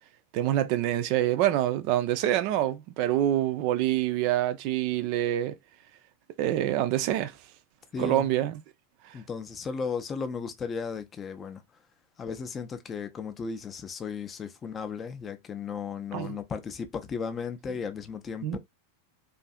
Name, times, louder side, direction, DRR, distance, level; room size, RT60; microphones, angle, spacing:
voice 1, 0.3-5.5 6.4-7.3 8.0-8.6 16.1-16.4 18.4-18.6, right 13 dB, 45° right, 0.4 m, -26 dB
voice 2, 7.9-8.3 9.1-11.6 12.2-18.6, left 5 dB, 20° left, 0.4 m, -35 dB
2.6 x 2.4 x 2.3 m
figure-of-eight pair, 90°, 0 cm